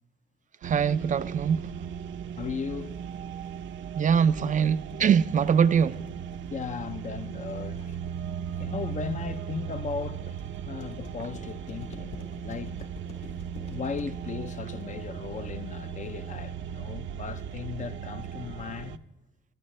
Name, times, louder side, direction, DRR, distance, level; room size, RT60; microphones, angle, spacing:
voice 1, 0.6-1.7 4.0-6.0, right 7 dB, 40° right, 0.4 m, -23 dB
sound 1, 0.6-19.0, right 8 dB, 70° right, 0.7 m, -37 dB
voice 2, 2.4-3.0 6.5-8.0 8.6-10.4 10.7-12.2 12.4-12.9 13.7-19.0, left 6 dB, 40° left, 0.6 m, -36 dB
sound 2, 4.5-16.4, left 4 dB, 75° left, 3.7 m, -49 dB
26.5 x 13.0 x 3.3 m
cardioid pair, 90°, 20 cm